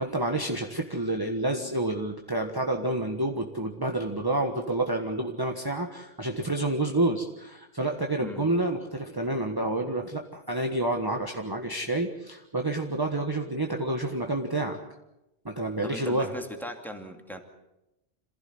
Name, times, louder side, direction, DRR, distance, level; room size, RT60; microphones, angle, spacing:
voice 1, 0.0-14.8 15.4-16.3, right 2 dB, 20° right, 2 dB, 1.5 m, -29 dB
voice 2, 15.8-17.4, equal, ahead, 3 dB, 2.6 m, -38 dB
27.0 x 16.0 x 8.0 m, 0.93 s
omnidirectional pair, 1.1 m